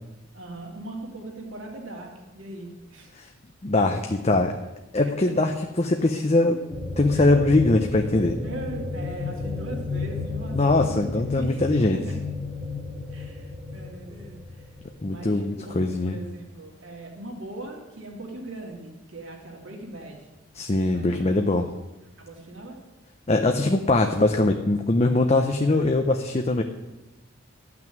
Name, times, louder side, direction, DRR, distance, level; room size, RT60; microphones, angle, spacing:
voice 1, 0.3-3.1 7.1-7.3 8.4-11.6 11.9-12.1 13.1-14.7 15.1-20.3 20.9-21.3 22.2-22.8, right 1 dB, 65° right, 0 dB, 2.6 m, -40 dB
voice 2, 3.6-4.5 4.9-6.6 7.0-8.4 10.5-12.0 15.0-16.2 20.5-21.7 23.3-26.6, left 2 dB, 30° left, 5 dB, 0.6 m, -22 dB
sound 1, 6.7-15.4, left 3 dB, 15° right, 1.9 m, -33 dB
12.5 x 6.0 x 9.2 m, 1.0 s
head